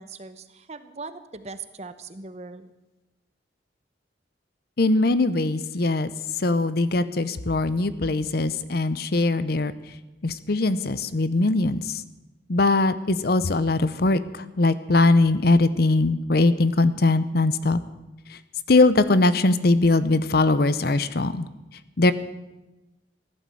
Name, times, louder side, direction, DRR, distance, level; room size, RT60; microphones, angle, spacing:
voice 1, 0.0-2.7, right 4 dB, 35° right, 12 dB, 0.9 m, -40 dB
voice 2, 4.8-6.1 6.4-9.7 10.2-12.0 12.5-17.8 18.3-18.4 18.7-21.5 22.0-22.1, left 2 dB, 55° left, 14 dB, 0.7 m, -21 dB
15.0 x 11.5 x 7.7 m, 1.0 s
head